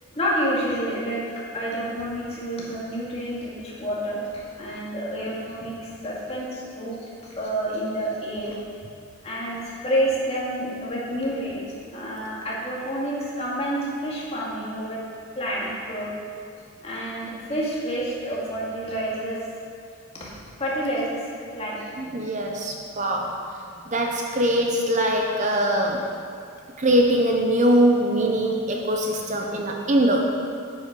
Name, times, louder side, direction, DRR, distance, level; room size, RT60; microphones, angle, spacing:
voice 1, 0.2-1.2 1.5-7.0 7.2-8.6 9.2-11.6 11.9-15.0 15.3-16.1 16.8-19.4 20.1-20.3 20.6-21.8, equal, 30° left, -6 dB, 2.2 m, -29 dB
voice 2, 22.0-23.4 23.9-26.1 26.8-30.2, right 1 dB, 35° right, 1 dB, 0.7 m, -22 dB
9.6 x 8.3 x 5.3 m, 2.4 s
head